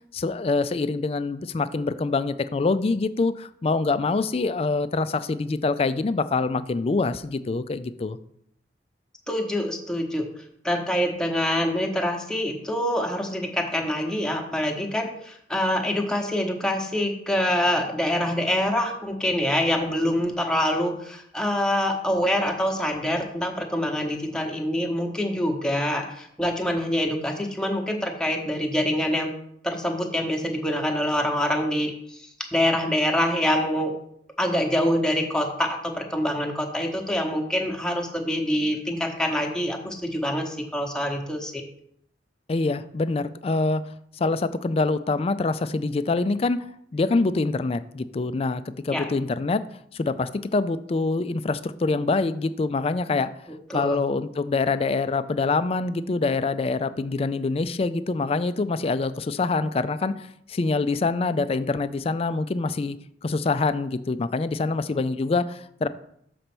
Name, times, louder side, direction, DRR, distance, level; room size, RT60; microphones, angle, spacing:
voice 1, 0.1-8.2 42.5-43.8 44.2-46.6 46.9-49.6 49.9-53.3 53.7-60.1 60.5-63.0 63.2-65.9, left 3 dB, 35° left, 13 dB, 0.3 m, -25 dB
voice 2, 9.3-10.2 10.6-29.3 29.6-32.2 32.5-34.0 34.4-41.6 48.9-49.1 53.7-54.0, equal, 5° left, 2 dB, 0.9 m, -25 dB
6.7 x 4.2 x 6.0 m, 0.72 s
head